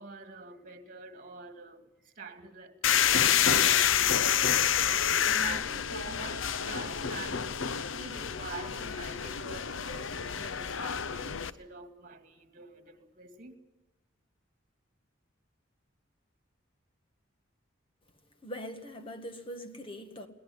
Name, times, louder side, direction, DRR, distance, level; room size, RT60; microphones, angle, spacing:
voice 1, 0.0-4.3 4.7-7.6 7.9-13.5, right 4 dB, 45° right, 2.4 m, -46 dB
sound 1, 2.8-11.5, left 8 dB, 75° left, 0.7 m, -28 dB
voice 2, 18.4-20.3, equal, 25° left, 1.9 m, -42 dB
22.0 x 18.0 x 9.7 m
head